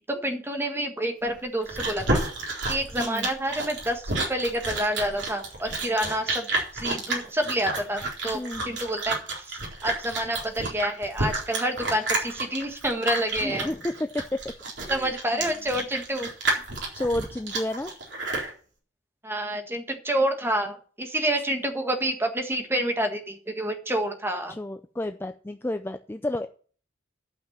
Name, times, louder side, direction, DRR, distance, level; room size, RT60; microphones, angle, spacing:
voice 1, 0.0-2.2 2.7-6.5 6.7-9.2 9.5-13.7 14.9-16.3 19.2-24.6, right 1 dB, 15° right, 5 dB, 1.6 m, -28 dB
Chewing mastication, 1.3-18.5, right 2 dB, 70° right, 3.9 m, -30 dB
voice 2, 3.0-3.3 8.3-8.6 13.4-14.4 14.8-15.4 16.9-17.9 24.5-26.5, left 1 dB, 10° left, 8 dB, 0.4 m, -31 dB
11.5 x 5.8 x 7.3 m, 0.43 s
head